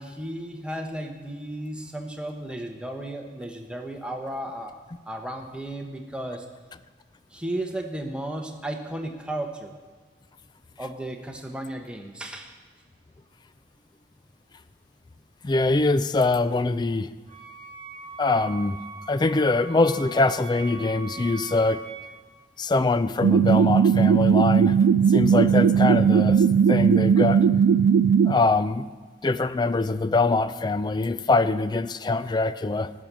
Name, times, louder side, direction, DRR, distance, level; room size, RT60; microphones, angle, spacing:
voice 1, 0.0-4.7 5.1-6.4 7.3-9.7 10.8-12.5, right 1 dB, 5° right, 2 dB, 1.0 m, -34 dB
voice 2, 15.4-17.1 18.2-18.8 19.1-21.8 22.6-24.8 25.1-27.4 28.2-28.9 29.2-32.9, left 3 dB, 25° left, 14 dB, 0.4 m, -23 dB
Wind instrument woodwind instrument, 17.3-22.2, right 4 dB, 30° right, 1.2 m, -41 dB
sound 1, 23.2-28.3, right 7 dB, 85° right, 0.4 m, -18 dB
12.0 x 6.2 x 8.8 m, 1.4 s
head